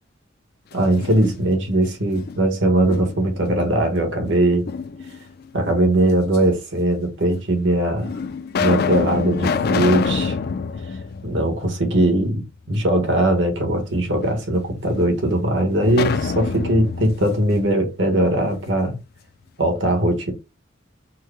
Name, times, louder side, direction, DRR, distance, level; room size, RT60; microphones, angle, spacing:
sound 1, 0.7-1.7 2.1-3.4 4.7-5.5 6.3-6.4 7.3-7.4 8.0-12.1 12.4-12.5 15.8-18.6, left 5 dB, 50° left, 0.4 m, -26 dB
voice 1, 0.7-4.7 5.5-8.1 8.6-10.4 11.2-19.0 19.6-20.3, right 1 dB, 70° right, 1.4 m, -20 dB
4.6 x 2.2 x 4.6 m
head